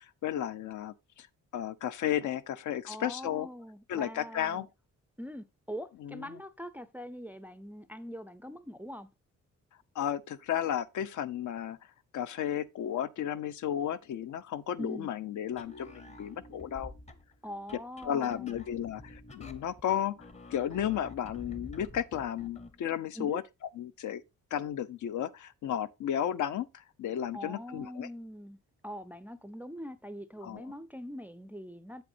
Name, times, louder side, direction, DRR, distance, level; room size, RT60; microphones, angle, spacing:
voice 1, 0.2-1.3 1.5-3.5 3.9-4.7 6.0-6.4 9.9-11.8 12.1-16.9 18.0-23.4 23.8-24.2 24.5-28.1 30.4-30.7, left 10 dB, 70° left, 0.7 m, -33 dB
voice 2, 2.9-4.7 5.2-9.1 14.8-15.1 17.4-18.5 23.2-23.4 27.3-28.6 28.8-32.0, equal, 5° right, 0.4 m, -43 dB
sound 1, 15.5-22.8, left 2 dB, 20° left, 0.8 m, -49 dB
8.0 x 7.9 x 2.6 m
cardioid pair, 155°, 31 cm